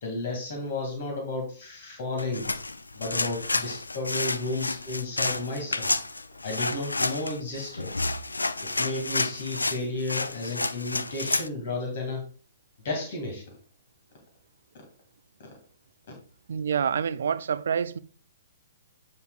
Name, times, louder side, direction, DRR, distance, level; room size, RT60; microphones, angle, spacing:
voice 1, 0.0-2.5 2.9-5.9 6.4-7.9 8.6-12.2 12.8-13.5, left 2 dB, 45° left, 2.1 m, -33 dB
sound 1, 2.2-11.5, left 3 dB, 75° left, 0.4 m, -30 dB
voice 2, 16.5-18.0, right 7 dB, 55° right, 0.4 m, -27 dB
9.3 x 5.8 x 2.3 m
figure-of-eight pair, 115°, 0 cm